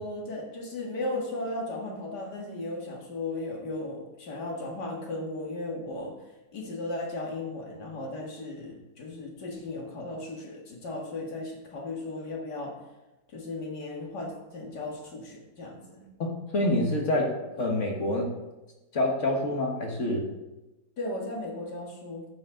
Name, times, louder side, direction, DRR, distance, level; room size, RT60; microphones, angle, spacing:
voice 1, 0.0-6.2 6.5-12.8 13.3-16.1 21.0-22.3, left 2 dB, 85° left, 0 dB, 2.3 m, -36 dB
voice 2, 16.2-18.3 18.9-20.2, left 1 dB, 50° left, 0 dB, 1.8 m, -27 dB
11.0 x 7.2 x 3.8 m, 1.0 s
omnidirectional pair, 1.7 m